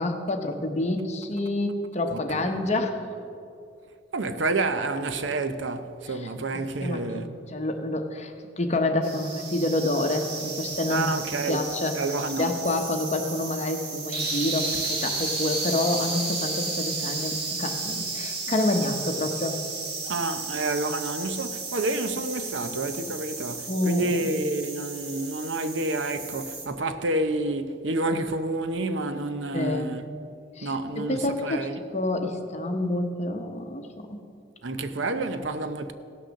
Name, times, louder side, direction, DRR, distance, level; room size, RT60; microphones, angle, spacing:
voice 1, 0.0-3.0 6.1-6.3 6.8-11.1 11.5-12.0 12.4-19.6 23.7-24.3 29.5-29.9 30.6-34.2, left 2 dB, 35° left, 1.0 m, -28 dB
voice 2, 2.1-2.5 4.1-7.3 10.9-11.7 11.9-12.5 20.0-30.0 30.6-31.7 34.6-35.9, right 2 dB, 70° right, 0.7 m, -29 dB
sound 1, 9.0-26.7, right 3 dB, 55° right, 1.9 m, -33 dB
17.0 x 6.4 x 6.4 m
head